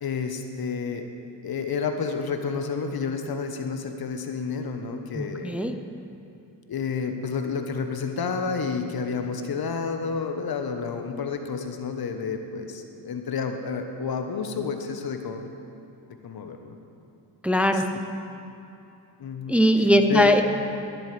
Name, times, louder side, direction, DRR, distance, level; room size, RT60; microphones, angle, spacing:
voice 1, 0.0-1.1 1.4-5.5 6.7-15.5 16.2-16.7 19.2-19.6 20.1-20.4, left 5 dB, 55° left, 6 dB, 1.1 m, -30 dB
voice 2, 5.1-5.8 17.4-17.9 19.5-20.4, equal, 5° right, 6 dB, 0.6 m, -20 dB
22.0 x 7.6 x 3.4 m, 2.7 s
supercardioid pair, 55°, 43 cm